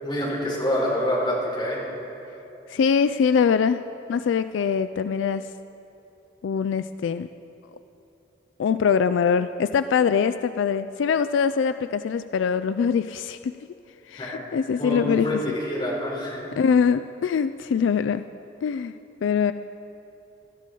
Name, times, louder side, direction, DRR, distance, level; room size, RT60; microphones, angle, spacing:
voice 1, 0.0-1.8 14.2-14.4 14.8-16.4, equal, 25° left, -5 dB, 3.8 m, -26 dB
voice 2, 2.7-3.8 4.1-5.4 6.4-7.3 8.6-13.6 14.1-15.4 16.6-18.3 18.6-18.9 19.2-19.5, left 6 dB, 85° left, 12 dB, 0.3 m, -23 dB
19.0 x 13.0 x 3.8 m, 2.9 s
head